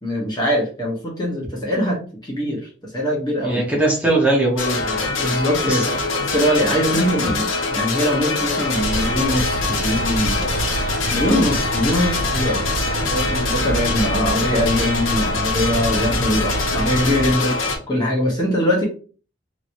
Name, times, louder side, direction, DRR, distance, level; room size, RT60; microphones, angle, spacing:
voice 1, 0.0-3.8 5.2-5.8 6.3-10.7 11.1-12.6 13.0-17.6 17.9-18.8, equal, 20° left, -3 dB, 1.0 m, -22 dB
voice 2, 3.4-5.1 5.6-5.9 7.2-7.3, right 2 dB, 10° right, -4 dB, 0.9 m, -20 dB
sound 1, 4.6-17.8, left 3 dB, 90° left, 0.8 m, -24 dB
sound 2, 8.7-17.3, right 2 dB, 70° right, 0.3 m, -27 dB
3.0 x 3.0 x 2.6 m, 0.39 s
head